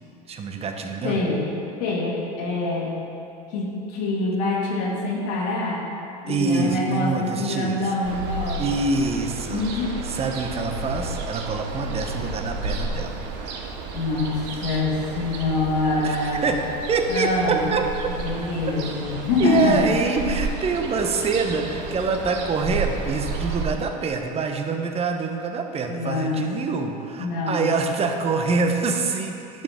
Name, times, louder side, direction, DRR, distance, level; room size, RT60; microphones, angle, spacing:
voice 1, 0.3-1.2 6.3-7.8 8.6-9.7 10.0-13.1 16.0-16.2 16.4-16.6 16.9-17.9 19.4-29.6, right 4 dB, 30° right, 4 dB, 0.9 m, -25 dB
voice 2, 1.0-1.5 1.8-2.9 3.5-5.9 6.2-8.9 9.5-9.9 13.9-16.6 17.1-17.8 18.1-19.8 25.9-26.4 27.2-27.7, left 2 dB, 75° left, -3 dB, 2.1 m, -25 dB
Ocean, 8.0-23.7, right 3 dB, 55° right, 1.1 m, -32 dB
10.5 x 6.9 x 3.6 m, 2.6 s
supercardioid pair, 105°, 21 cm